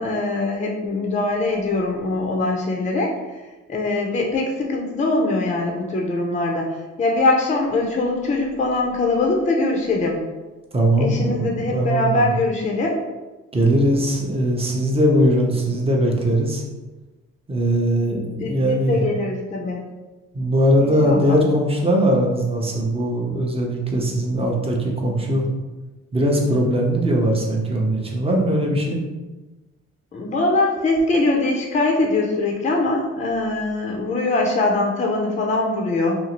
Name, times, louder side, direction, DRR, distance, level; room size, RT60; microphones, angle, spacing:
voice 1, 0.0-3.4 3.7-10.2 11.0-13.0 18.4-19.8 20.8-21.4 30.1-36.2, left 2 dB, 25° left, 0 dB, 0.5 m, -22 dB
voice 2, 10.7-12.3 13.5-16.6 17.5-19.0 20.3-25.4 26.1-29.0, right 1 dB, 20° right, -1 dB, 0.6 m, -20 dB
2.6 x 2.4 x 2.9 m, 1.2 s
cardioid pair, 90°, 30 cm